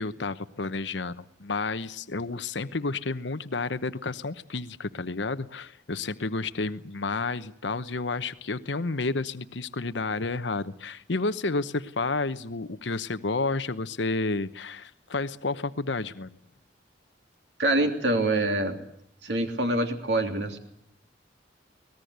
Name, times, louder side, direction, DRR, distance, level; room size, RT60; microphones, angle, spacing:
voice 1, 0.0-16.4 17.8-17.9, left 3 dB, 75° left, 13 dB, 1.0 m, -31 dB
voice 2, 17.6-18.8 19.2-20.6, right 2 dB, 65° right, 5 dB, 3.1 m, -25 dB
24.5 x 19.5 x 8.1 m, 0.72 s
head